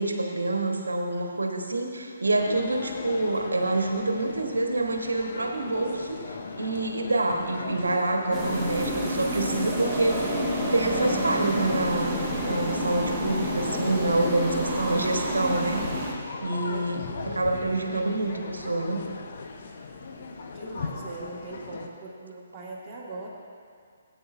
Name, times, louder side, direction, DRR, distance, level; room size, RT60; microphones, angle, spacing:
voice 1, 0.0-10.3 10.7-15.9 16.4-19.0, right 2 dB, 75° right, 3 dB, 1.2 m, -27 dB
sound 1, 2.3-21.9, left 4 dB, 50° left, 0.9 m, -38 dB
sound 2, 8.3-16.1, equal, 5° right, 1.9 m, -29 dB
voice 2, 9.5-9.9 16.7-17.1 20.5-23.3, right 3 dB, 20° right, -7 dB, 1.8 m, -41 dB
17.5 x 8.8 x 2.6 m, 2.1 s
figure-of-eight pair, 135°, 0 cm